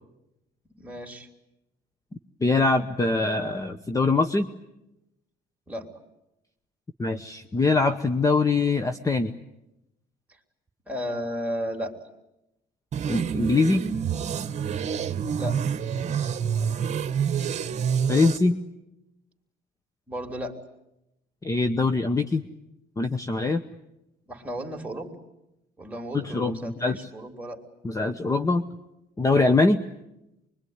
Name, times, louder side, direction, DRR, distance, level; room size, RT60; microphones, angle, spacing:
voice 1, 0.8-1.3 5.7-5.9 10.9-12.0 15.4-15.7 20.1-20.6 24.3-25.1 25.8-27.6, equal, 10° right, 1 dB, 3.4 m, -34 dB
voice 2, 2.4-4.5 7.0-9.3 13.1-13.8 18.1-18.6 21.4-22.4 23.0-23.6 26.1-27.1 27.8-28.6 29.2-29.8, left 3 dB, 20° left, 8 dB, 1.0 m, -23 dB
sound 1, 12.9-18.4, right 7 dB, 45° right, 1.3 m, -27 dB
25.0 x 23.0 x 9.6 m, 0.89 s
cardioid pair, 110°, 17 cm